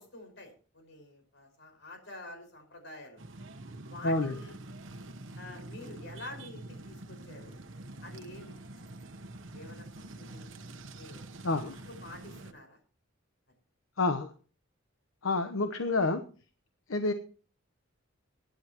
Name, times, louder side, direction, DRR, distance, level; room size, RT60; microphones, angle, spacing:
voice 1, 0.0-3.2 3.9-4.6 5.4-7.6 8.0-8.6 9.5-10.5 10.9-11.3 11.6-12.8, left 2 dB, 60° left, 5 dB, 5.3 m, -48 dB
sound 1, 3.2-12.5, right 2 dB, 70° right, 1.1 m, -46 dB
voice 2, 4.0-4.3 11.4-11.7 14.0-14.3 15.2-16.2 16.9-17.1, left 2 dB, 85° left, 8 dB, 1.0 m, -28 dB
23.0 x 10.5 x 3.0 m, 0.39 s
head